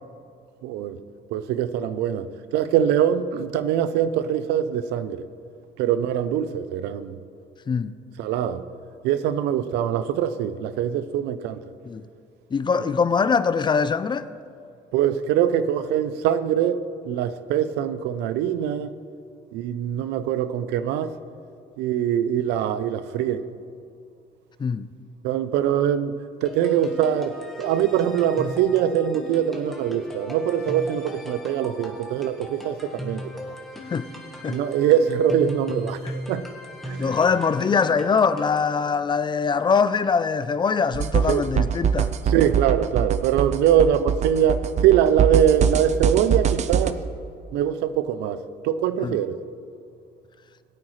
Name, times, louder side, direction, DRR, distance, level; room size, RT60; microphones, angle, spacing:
voice 1, 0.6-1.0 1.3-5.2 5.8-7.2 8.2-8.7 9.0-11.6 14.9-16.8 17.1-18.9 19.5-21.1 21.8-23.5 25.2-33.3 34.5-36.5 36.8-37.2 41.3-41.4 42.3-47.0 47.5-49.4, right 9 dB, 90° right, 0.6 m, -23 dB
voice 2, 12.5-14.3 24.6-24.9 33.9-34.1 34.4-34.6 37.0-42.1 49.0-49.2, left 5 dB, 25° left, 0.5 m, -22 dB
sound 1, 26.5-38.8, equal, ahead, 1.7 m, -38 dB
sound 2, 40.9-46.9, right 8 dB, 40° right, 0.6 m, -23 dB
20.5 x 8.6 x 3.2 m
cardioid pair, 110°, 17 cm